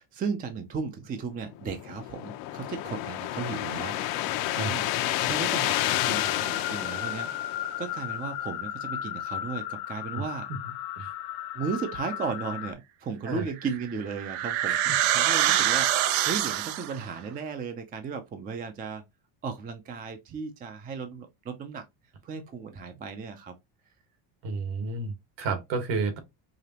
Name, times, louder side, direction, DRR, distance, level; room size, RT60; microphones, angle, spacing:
voice 1, 0.0-3.9 4.6-4.9 5.2-10.5 11.5-19.0 19.4-21.8 22.2-23.5, right 5 dB, 20° right, 0.4 m, -35 dB
sound 1, 1.5-8.1, left 14 dB, 90° left, 0.8 m, -30 dB
sound 2, 5.7-12.7, left 12 dB, 55° left, 0.5 m, -35 dB
sound 3, 13.6-17.0, right 12 dB, 85° right, 0.7 m, -25 dB
voice 2, 14.6-15.0 15.4-15.6 24.4-26.2, right 4 dB, 60° right, 1.5 m, -32 dB
4.9 x 2.9 x 2.8 m
cardioid pair, 170°, 48 cm